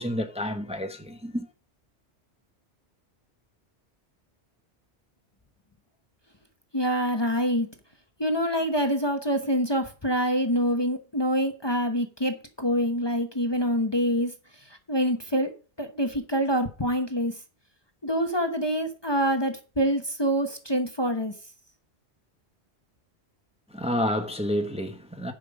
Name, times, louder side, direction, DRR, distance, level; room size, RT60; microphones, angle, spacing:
voice 1, 0.0-1.5 23.7-25.3, left 1 dB, 5° right, 1.0 m, -29 dB
voice 2, 6.7-7.7 8.2-14.3 14.9-15.5 15.8-17.3 18.0-21.3, equal, 25° left, 1.1 m, -26 dB
10.5 x 5.6 x 5.2 m
omnidirectional pair, 1.1 m